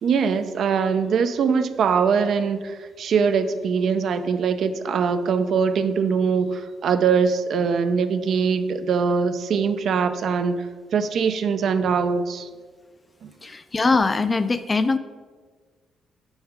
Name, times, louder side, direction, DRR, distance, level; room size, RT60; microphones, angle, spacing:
voice 1, 0.0-10.7 10.9-12.5, right 6 dB, 65° right, 9 dB, 0.5 m, -22 dB
voice 2, 13.4-15.0, left 3 dB, 25° left, 11 dB, 0.4 m, -22 dB
5.6 x 5.5 x 5.7 m, 1.5 s
cardioid pair, 90°, 0 cm